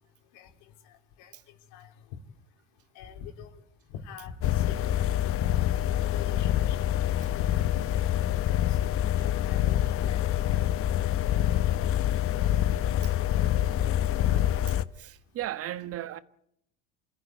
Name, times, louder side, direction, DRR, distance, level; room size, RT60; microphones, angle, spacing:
voice 1, 0.8-1.4 1.7-1.9 3.0-3.6 3.9-4.8 5.3-5.5 6.1-6.9 8.7-9.0 9.5-11.2 11.7-11.9, left 8 dB, 70° left, 3.7 m, -46 dB
sound 1, 4.4-14.8, left 12 dB, 45° left, 0.9 m, -26 dB
voice 2, 14.1-16.2, right 13 dB, 45° right, 1.4 m, -38 dB
28.5 x 14.0 x 9.4 m
supercardioid pair, 110°, 33 cm